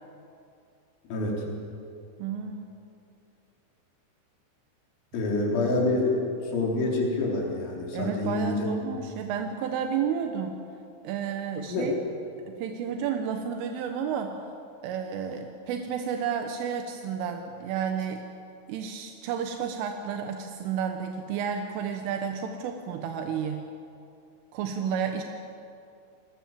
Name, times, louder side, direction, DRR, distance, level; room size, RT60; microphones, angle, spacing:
voice 1, 1.1-1.5 5.1-8.7 11.7-11.9, left 2 dB, 70° left, -1 dB, 6.4 m, -27 dB
voice 2, 2.2-2.7 7.9-10.6 11.1-12.0 12.5-14.4 14.8-18.2 18.7-23.6 24.5-25.2, right 7 dB, 85° right, 5 dB, 3.7 m, -31 dB
28.5 x 20.5 x 7.5 m, 2.6 s
omnidirectional pair, 5.6 m